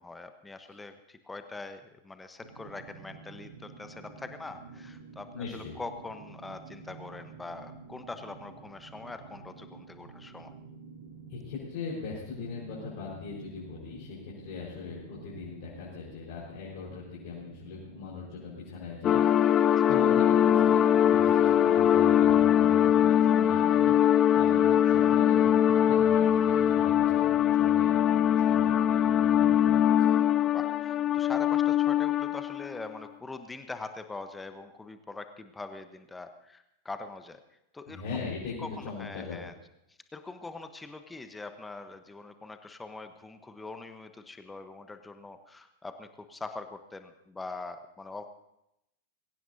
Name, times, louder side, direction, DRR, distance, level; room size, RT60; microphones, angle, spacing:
voice 1, 0.0-10.5 19.6-20.0 30.5-37.4 37.7-38.3 38.6-39.5 40.1-48.3, left 3 dB, 10° left, 9 dB, 1.1 m, -43 dB
sound 1, 2.4-19.9, right 5 dB, 60° right, 2.8 m, -50 dB
voice 2, 5.3-5.7 11.3-29.8 37.9-39.4, left 5 dB, 50° left, -7 dB, 4.8 m, -40 dB
sound 2, 19.0-32.7, left 10 dB, 30° left, 0.4 m, -22 dB
22.5 x 16.5 x 2.8 m, 0.84 s
figure-of-eight pair, 90°, 0 cm